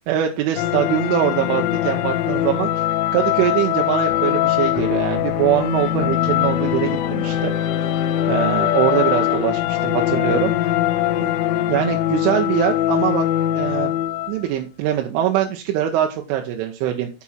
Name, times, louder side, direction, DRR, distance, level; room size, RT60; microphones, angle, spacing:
voice 1, 0.1-2.7 3.1-7.5 7.9-8.0 8.3-10.5 11.2-11.3 11.7-13.3 13.6-13.9 14.3-17.1, right 11 dB, 85° right, 3 dB, 3.3 m, -22 dB
sound 1, 0.6-14.4, left 12 dB, 90° left, 3.4 m, -21 dB
9.9 x 6.1 x 4.4 m, 0.31 s
omnidirectional pair, 5.6 m